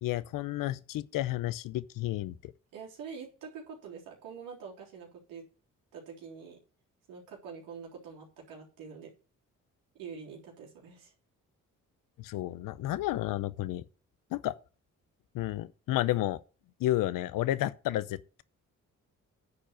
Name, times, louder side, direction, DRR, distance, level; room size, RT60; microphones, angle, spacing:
voice 1, 0.0-2.5 12.2-13.8 14.3-14.5 15.3-16.4 16.8-18.4, left 14 dB, 75° left, 0.7 m, -31 dB
voice 2, 2.7-5.4 5.9-6.6 7.1-9.1 9.9-11.1, right 6 dB, 80° right, 3.7 m, -45 dB
9.9 x 4.5 x 7.5 m
supercardioid pair, 55°, 33 cm